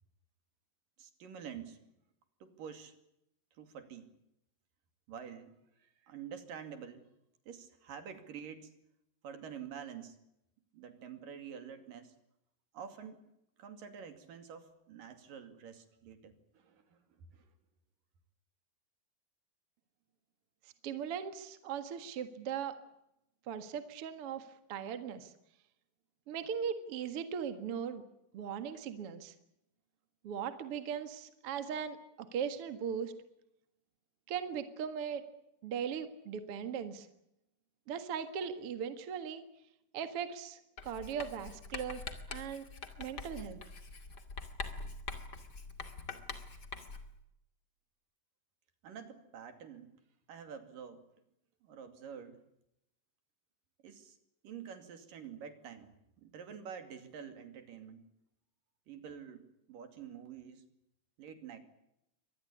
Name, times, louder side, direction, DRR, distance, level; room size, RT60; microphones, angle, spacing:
voice 1, 1.0-1.8 2.4-2.9 3.6-4.1 5.1-7.1 7.5-8.7 9.2-10.2 10.7-12.1 12.7-13.2 13.6-17.5 48.8-49.9 50.3-51.1 51.6-52.4 53.8-54.2 54.4-58.1 58.9-60.6 61.2-61.6, right 7 dB, 75° right, 9 dB, 4.1 m, -48 dB
voice 2, 20.8-22.8 23.5-25.3 26.3-28.0 28.3-29.3 30.2-33.1 34.3-35.2 35.6-37.1 37.9-39.4 39.9-42.7 43.0-43.6, right 7 dB, 50° right, 10 dB, 2.3 m, -39 dB
Writing, 40.8-47.2, left 4 dB, 35° left, 2.5 m, -44 dB
25.0 x 20.0 x 8.5 m, 0.82 s
omnidirectional pair, 4.0 m